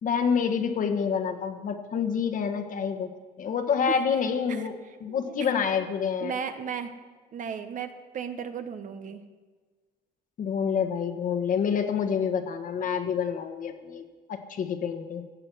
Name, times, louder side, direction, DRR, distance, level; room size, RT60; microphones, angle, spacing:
voice 1, 0.0-3.1 3.4-4.8 5.0-6.3 10.4-14.0 14.3-15.2, left 7 dB, 50° left, 6 dB, 1.4 m, -27 dB
voice 2, 5.1-5.5 6.2-6.9 7.3-9.2, right 7 dB, 50° right, 9 dB, 1.1 m, -35 dB
15.0 x 7.8 x 6.3 m, 1.4 s
cardioid pair, 110°, 17 cm